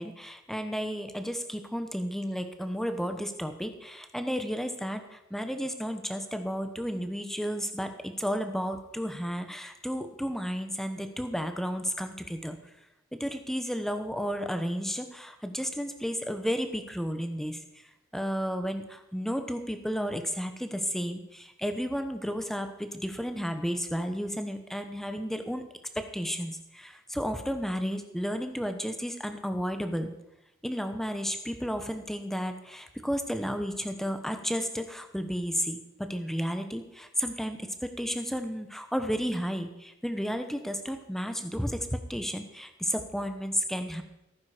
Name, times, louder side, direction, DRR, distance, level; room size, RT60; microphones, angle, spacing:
voice 1, 0.0-12.6 13.1-17.6 18.1-25.7 25.9-30.1 30.6-44.0, equal, ahead, 7 dB, 1.0 m, -32 dB
16.5 x 9.5 x 5.0 m, 0.88 s
head